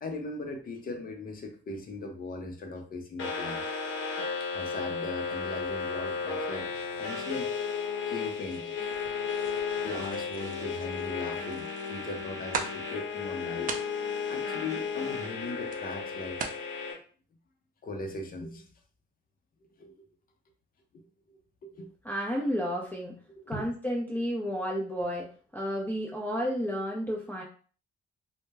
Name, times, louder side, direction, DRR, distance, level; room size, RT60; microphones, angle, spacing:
voice 1, 0.0-3.7 4.4-7.5 8.1-8.9 9.8-13.7 14.3-16.4 17.8-18.7 19.8-20.0 20.9-21.9 23.4-23.7, left 2 dB, 45° left, 4 dB, 0.6 m, -39 dB
sound 1, 3.2-16.9, left 5 dB, 85° left, 1.0 m, -34 dB
sound 2, 8.3-16.6, right 5 dB, 45° right, 0.4 m, -42 dB
voice 2, 22.0-23.1 23.5-25.3 25.5-27.4, equal, 10° left, -2 dB, 0.5 m, -31 dB
2.2 x 2.1 x 3.2 m, 0.42 s
cardioid pair, 90°, 20 cm